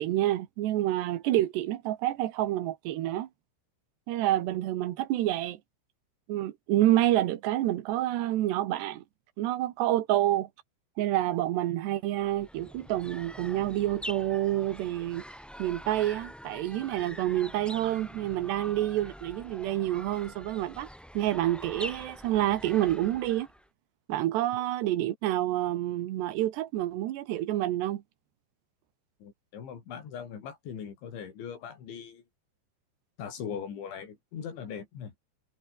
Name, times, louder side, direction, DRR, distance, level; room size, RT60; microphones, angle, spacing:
voice 1, 0.0-3.3 4.1-5.6 6.3-9.0 9.4-10.5 11.0-15.2 15.6-20.9 21.2-23.5 24.1-28.0, right 14 dB, 75° right, 3.5 m, -28 dB
sound 1, 12.1-23.7, equal, ahead, 1.4 m, -45 dB
voice 2, 29.2-32.2 33.2-35.1, left 7 dB, 90° left, 6.5 m, -40 dB
omnidirectional pair, 5.1 m